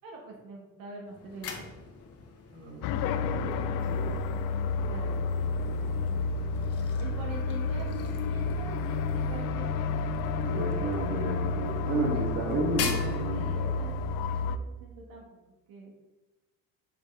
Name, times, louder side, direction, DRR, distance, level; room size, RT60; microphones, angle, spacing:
voice 1, 0.0-1.7 4.3-9.9 13.3-15.4 15.7-15.9, right 2 dB, 80° right, -1 dB, 1.5 m, -45 dB
sound 1, 1.0-14.1, left 5 dB, 45° left, 1.0 m, -44 dB
voice 2, 2.5-4.2 10.4-13.5, right 2 dB, 50° right, -2 dB, 2.4 m, -33 dB
sound 2, 2.8-14.6, left 4 dB, 80° left, 0.5 m, -30 dB
7.4 x 5.2 x 3.3 m, 1.1 s
cardioid pair, 135°, 33 cm